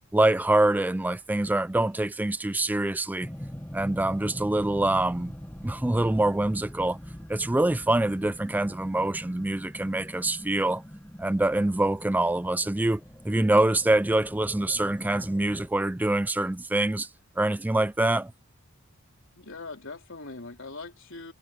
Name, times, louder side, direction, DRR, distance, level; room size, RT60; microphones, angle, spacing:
voice 1, 0.1-3.3 3.7-5.3 5.6-7.0 7.3-10.8 11.2-17.1 17.4-18.3, right 2 dB, 10° right, 0.3 m, -25 dB
sound 1, 3.2-15.7, equal, 10° left, 1.6 m, -43 dB
voice 2, 19.4-21.3, left 3 dB, 65° left, 3.8 m, -41 dB
head